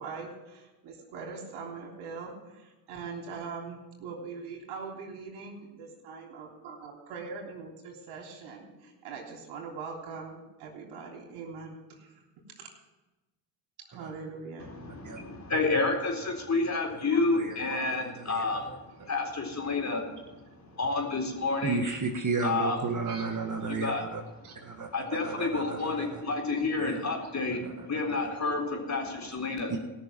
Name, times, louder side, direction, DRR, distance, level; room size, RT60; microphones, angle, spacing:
voice 1, 0.0-12.2 12.5-12.7 13.9-14.7 17.1-17.2 17.6-17.9 19.0-19.1 20.7-20.8 23.0-23.3 24.4-24.5 26.5-26.6 27.2-27.3 28.0-28.1, right 5 dB, 80° right, -1 dB, 3.5 m, -42 dB
voice 2, 14.7-18.7 19.1-21.9 22.4-22.8 23.7-24.0 24.9-27.6 27.9-29.7, left 3 dB, 35° left, 1 dB, 4.1 m, -30 dB
voice 3, 17.3-18.8 21.6-24.2 24.6-26.2 26.8-27.0 27.5-28.3 29.7-29.8, right 4 dB, 35° right, 3 dB, 1.9 m, -34 dB
17.5 x 6.5 x 7.5 m, 1.1 s
supercardioid pair, 60°, 49 cm